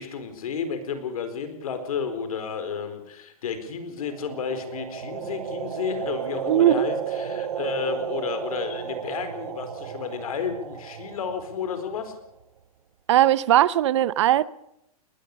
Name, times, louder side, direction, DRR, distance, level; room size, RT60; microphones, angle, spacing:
voice 1, 0.0-12.1, left 6 dB, 70° left, 9 dB, 4.5 m, -32 dB
sound 1, 4.1-12.1, right 7 dB, 85° right, 1.7 m, -33 dB
voice 2, 6.5-6.9 13.1-14.5, right 12 dB, 50° right, 20 dB, 0.7 m, -19 dB
21.0 x 19.5 x 6.8 m, 0.82 s
hypercardioid pair, 165°, 19 cm